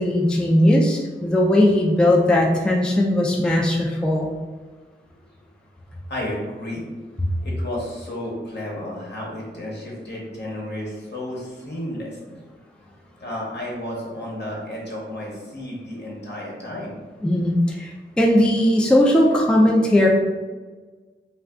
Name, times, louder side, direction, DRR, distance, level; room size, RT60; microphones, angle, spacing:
voice 1, 0.0-4.3 17.2-20.1, left 1 dB, 5° left, -1 dB, 0.4 m, -18 dB
voice 2, 6.1-6.8 7.4-12.3 13.2-16.9, left 1 dB, 60° left, -4 dB, 1.0 m, -32 dB
2.3 x 2.2 x 3.5 m, 1.3 s
cardioid pair, 45°, 20 cm